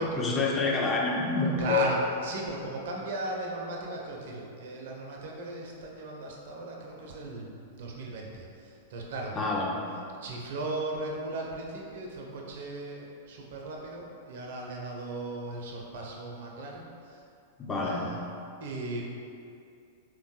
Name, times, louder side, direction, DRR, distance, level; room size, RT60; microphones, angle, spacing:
voice 1, 0.0-1.9 9.3-9.7 17.6-18.0, left 3 dB, 20° left, -2 dB, 0.4 m, -27 dB
voice 2, 1.6-9.4 10.2-17.2 17.8-18.2 18.6-19.1, right 2 dB, 60° right, -1 dB, 0.4 m, -36 dB
3.4 x 2.2 x 2.7 m, 2.5 s
figure-of-eight pair, 100°, 0 cm